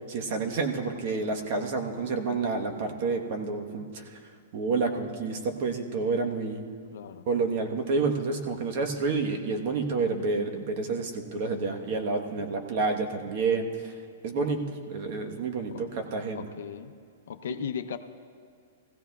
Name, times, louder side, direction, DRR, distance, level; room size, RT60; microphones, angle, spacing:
voice 1, 0.1-4.2 4.5-6.6 7.3-13.9 14.2-16.5, right 4 dB, 45° right, 4 dB, 1.1 m, -29 dB
voice 2, 6.9-7.3 15.7-15.8 16.3-16.9 17.3-18.0, left 8 dB, 70° left, 9 dB, 0.6 m, -36 dB
19.5 x 15.5 x 2.3 m, 2.1 s
hypercardioid pair, 160°, 0 cm